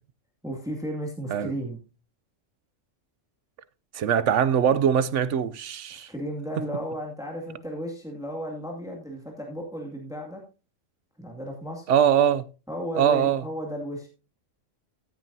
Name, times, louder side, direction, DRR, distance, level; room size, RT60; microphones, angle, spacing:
voice 1, 0.4-1.8 5.9-10.4 11.2-11.9 12.7-14.1, equal, 5° right, 2.3 m, -34 dB
voice 2, 3.9-6.1 11.9-12.4 13.0-13.4, right 8 dB, 70° right, 1.0 m, -22 dB
14.5 x 9.0 x 2.7 m
omnidirectional pair, 1.3 m